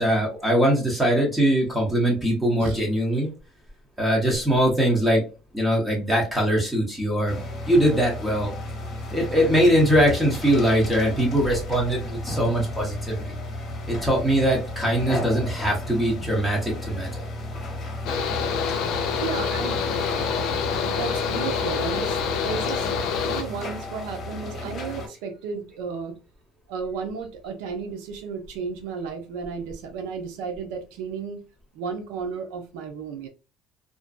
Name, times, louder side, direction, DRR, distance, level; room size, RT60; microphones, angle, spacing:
voice 1, 0.0-3.3 4.0-5.2 5.5-8.5 9.1-13.4 13.9-17.1, equal, 10° right, 0.9 m, -22 dB
sound 1, 7.3-25.1, left 1 dB, 40° left, 1.0 m, -33 dB
Mechanical fan, 18.1-23.4, left 6 dB, 65° left, 0.5 m, -26 dB
voice 2, 19.2-19.8 20.8-26.2 26.7-31.4 31.7-33.3, right 5 dB, 85° right, 0.5 m, -33 dB
2.5 x 2.1 x 2.3 m
cardioid pair, 115°, 0 cm